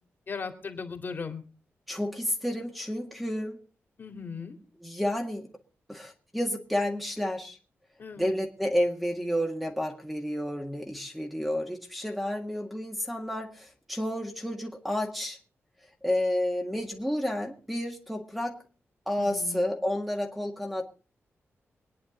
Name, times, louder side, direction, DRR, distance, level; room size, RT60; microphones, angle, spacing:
voice 1, 0.3-1.4 4.0-4.5 8.0-8.3 19.2-19.6, left 5 dB, 45° left, 5 dB, 2.5 m, -37 dB
voice 2, 1.9-3.6 4.8-5.4 5.9-7.6 8.2-15.4 16.0-18.6 19.1-20.8, left 1 dB, ahead, 2 dB, 1.8 m, -30 dB
24.5 x 9.9 x 3.8 m, 0.37 s
wide cardioid pair, 155°, 5 cm